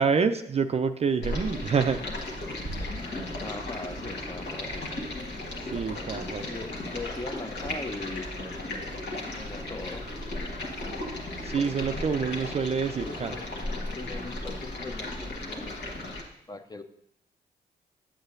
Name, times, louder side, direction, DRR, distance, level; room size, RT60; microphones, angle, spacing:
voice 1, 0.0-2.1 5.7-6.5 11.4-13.3, right 5 dB, 35° right, 8 dB, 0.4 m, -27 dB
Stream, 1.2-16.2, left 1 dB, 60° left, 1.5 m, -35 dB
voice 2, 3.4-4.9 6.4-8.3 9.4-10.1 13.0-13.5 13.9-15.7 16.5-16.8, left 2 dB, 20° left, 9 dB, 0.7 m, -40 dB
10.0 x 7.9 x 2.6 m, 0.75 s
hypercardioid pair, 40°, 19 cm